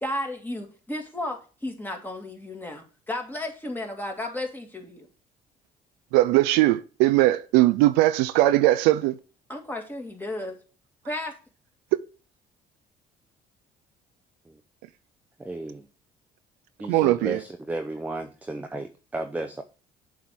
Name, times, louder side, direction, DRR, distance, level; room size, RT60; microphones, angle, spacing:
voice 1, 0.0-5.1 9.5-10.6 11.0-11.4, left 1 dB, 10° left, 2.1 m, -33 dB
voice 2, 6.1-9.2 16.9-17.4, right 16 dB, 90° right, 0.4 m, -20 dB
voice 3, 15.4-15.9 16.8-19.6, right 2 dB, 10° right, 0.6 m, -33 dB
7.3 x 3.7 x 6.0 m
supercardioid pair, 75°, 16 cm